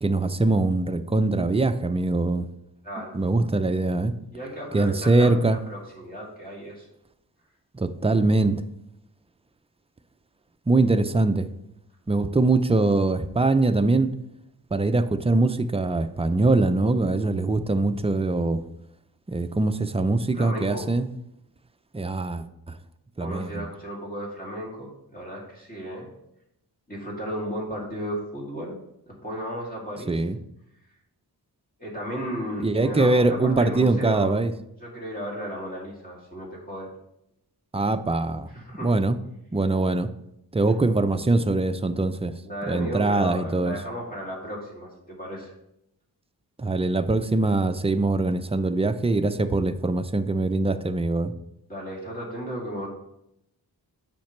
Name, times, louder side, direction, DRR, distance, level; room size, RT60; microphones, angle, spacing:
voice 1, 0.0-2.5 3.1-4.1 4.7-5.6 7.7-8.6 10.7-11.5 12.1-14.1 14.7-18.6 19.3-21.1 21.9-22.8 23.2-23.6 30.1-30.4 32.6-34.5 37.7-38.5 38.8-39.2 39.5-40.1 40.5-42.3 42.7-43.8 46.6-51.3, right 2 dB, 15° right, 10 dB, 0.4 m, -22 dB
voice 2, 2.8-3.2 4.3-6.9 20.3-20.9 23.2-26.1 26.9-28.8 29.1-30.2 31.8-34.3 34.8-36.9 38.5-39.0 42.4-45.5 51.7-52.9, equal, 20° left, -3 dB, 2.5 m, -34 dB
8.6 x 5.8 x 3.2 m, 0.81 s
wide cardioid pair, 70°, 39 cm